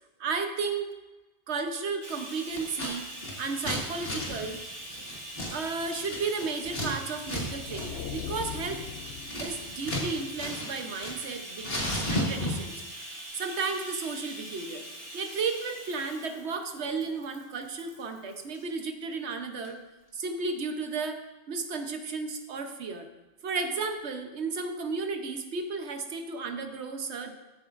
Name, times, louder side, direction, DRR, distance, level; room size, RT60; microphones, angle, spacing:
voice 1, 0.2-0.9 1.5-3.1 3.4-4.6 5.5-8.9 9.4-14.8 15.1-19.8 20.1-23.1 23.4-27.3, right 4 dB, 80° right, 6 dB, 1.2 m, -33 dB
Bathtub (filling or washing), 2.0-18.7 19.6-19.7 20.1-20.2, right 1 dB, 25° right, 1.6 m, -43 dB
Scissors, 2.6-2.9 3.2-6.9 7.2-7.4 7.7-7.9 8.2-10.1 10.4-11.3 11.6-12.7, left 1 dB, 60° left, 2.3 m, -33 dB
sound 1, 7.1-10.1, left 9 dB, 75° left, 0.8 m, -40 dB
14.0 x 8.8 x 2.6 m, 1.1 s
omnidirectional pair, 1.1 m